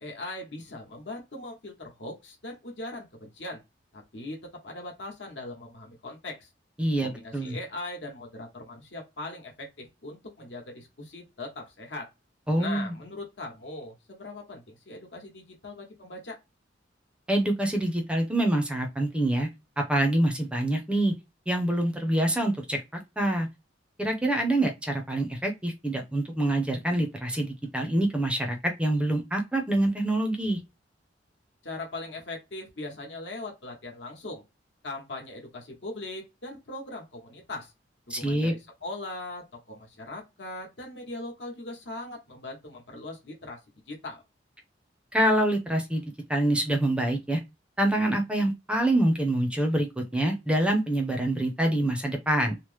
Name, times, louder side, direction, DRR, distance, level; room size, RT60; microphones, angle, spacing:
voice 1, 0.0-3.6 3.9-6.5 7.0-12.1 12.6-16.4 31.6-34.4 34.8-37.7 38.1-43.6 43.9-44.2, left 2 dB, 70° left, 1.0 m, -40 dB
voice 2, 6.8-7.6 12.5-12.9 17.3-19.5 19.8-21.1 21.5-22.8 23.2-23.5 24.0-30.6 38.1-38.5 45.1-46.0 46.3-47.4 47.8-52.6, right 1 dB, 5° right, 0.5 m, -26 dB
3.0 x 2.0 x 3.1 m
head